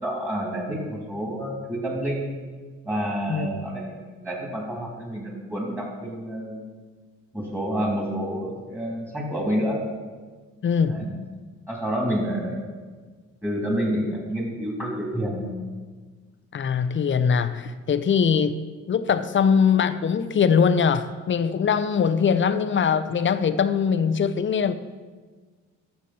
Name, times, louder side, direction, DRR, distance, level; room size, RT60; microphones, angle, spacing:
voice 1, 0.0-2.3 2.8-6.6 7.3-9.8 10.9-11.1 11.7-12.7 13.4-15.5, equal, 5° right, -3 dB, 3.5 m, -28 dB
voice 2, 10.6-11.0 16.5-18.6 18.9-24.7, left 6 dB, 40° left, 12 dB, 0.7 m, -22 dB
13.0 x 7.1 x 4.3 m, 1.4 s
cardioid pair, 90°, 30 cm